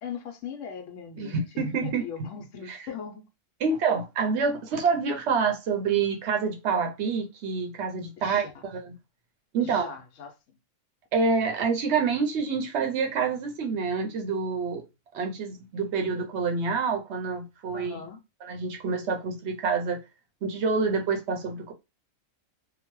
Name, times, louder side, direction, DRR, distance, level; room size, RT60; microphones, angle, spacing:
voice 1, 0.0-1.4 1.8-3.3 8.2-8.6 9.6-10.6 17.7-18.2, left 7 dB, 70° left, 0.9 m, -40 dB
voice 2, 1.2-2.0 2.7-2.8 3.6-8.9 9.5-9.9 11.1-14.8 15.1-18.0 18.4-20.0 20.4-21.7, right 5 dB, 65° right, 0.8 m, -27 dB
2.8 x 2.1 x 3.0 m
omnidirectional pair, 1.4 m